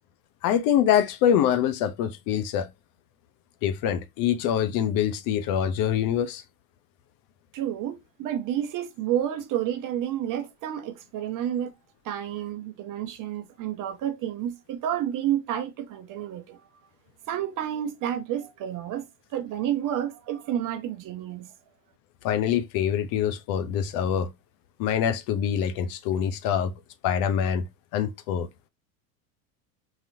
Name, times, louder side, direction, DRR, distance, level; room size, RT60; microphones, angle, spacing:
voice 1, 0.4-2.7 3.6-6.4 22.2-24.3 24.8-26.7 27.0-27.6 27.9-28.5, left 9 dB, 50° left, 0.6 m, -25 dB
voice 2, 7.5-11.7 12.0-16.6 17.3-19.1 19.3-21.5, right 11 dB, 45° right, 0.8 m, -30 dB
4.0 x 2.8 x 2.6 m
hypercardioid pair, 85°, 45 cm